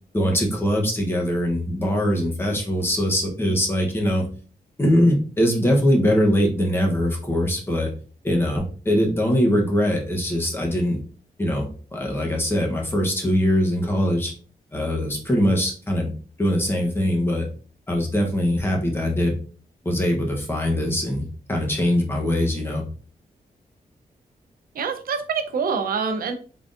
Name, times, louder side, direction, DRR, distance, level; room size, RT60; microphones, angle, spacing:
voice 1, 0.1-4.2 4.8-7.9 8.2-11.0 11.4-14.3 14.7-16.1 16.4-17.5 17.9-19.3 19.8-22.8, equal, 15° left, 0 dB, 0.9 m, -22 dB
voice 2, 24.7-26.3, right 5 dB, 85° right, 8 dB, 0.6 m, -25 dB
3.8 x 3.3 x 2.5 m, 0.40 s
wide cardioid pair, 150°, 15 cm